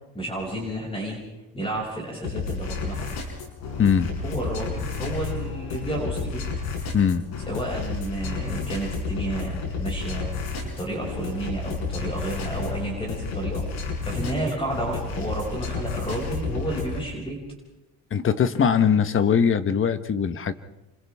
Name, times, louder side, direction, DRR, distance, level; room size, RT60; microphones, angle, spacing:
voice 1, 0.1-1.2 1.5-3.0 4.2-6.4 7.5-10.5 10.8-13.6 14.0-17.4, right 1 dB, 15° left, -2 dB, 6.5 m, -31 dB
sound 1, 2.2-17.0, left 4 dB, 80° left, 6.2 m, -31 dB
voice 2, 3.8-4.1 6.9-7.2 18.1-20.5, left 7 dB, 35° left, 11 dB, 1.3 m, -21 dB
29.0 x 26.0 x 3.6 m, 0.98 s
cardioid pair, 130°, 36 cm